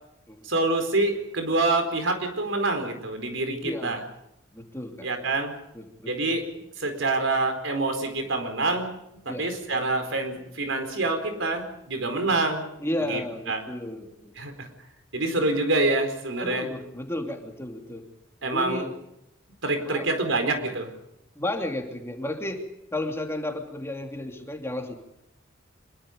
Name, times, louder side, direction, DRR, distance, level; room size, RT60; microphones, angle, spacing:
voice 1, 0.4-4.0 5.0-5.5 6.1-6.5 6.8-9.0 9.2-12.7 13.1-13.2 13.5-13.6 14.4-14.7 15.1-16.7 18.4-18.9 19.6-20.9, right 2 dB, 75° right, 7 dB, 4.5 m, -26 dB
voice 2, 3.6-4.0 4.5-5.1 5.7-6.1 9.3-9.5 12.8-14.3 16.4-18.1 18.5-18.9 19.9-20.1 21.3-25.0, left 1 dB, 15° left, 3 dB, 3.0 m, -33 dB
26.0 x 23.0 x 5.3 m, 0.83 s
head